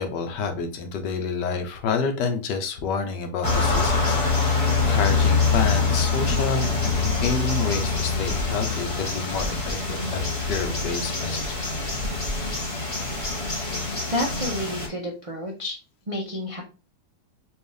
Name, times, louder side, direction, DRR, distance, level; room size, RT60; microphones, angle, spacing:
voice 1, 0.0-4.6 4.9-11.6, left 5 dB, 80° left, 6 dB, 1.4 m, -29 dB
sound 1, 3.4-14.9, left 4 dB, 25° left, 0.9 m, -24 dB
voice 2, 14.1-15.8 16.1-16.6, left 1 dB, 50° right, -1 dB, 0.4 m, -30 dB
4.4 x 2.7 x 3.3 m, 0.32 s
omnidirectional pair, 1.9 m